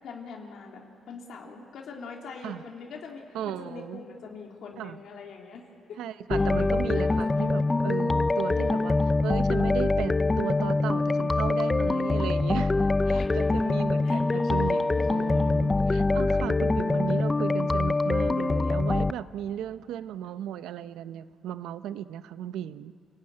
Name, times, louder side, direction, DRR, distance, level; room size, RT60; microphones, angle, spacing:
voice 1, 0.0-6.0 6.3-7.8 8.5-9.1 13.0-13.7 14.0-15.6 16.4-17.0, left 4 dB, 70° left, -1 dB, 3.4 m, -44 dB
voice 2, 3.3-4.0 4.8-5.0 6.0-12.7 13.1-22.9, right 10 dB, 85° right, 13 dB, 0.8 m, -35 dB
sound 1, 6.3-19.1, left 3 dB, 20° left, 0.5 m, -24 dB
30.0 x 17.5 x 9.8 m, 2.6 s
cardioid pair, 90°, 0 cm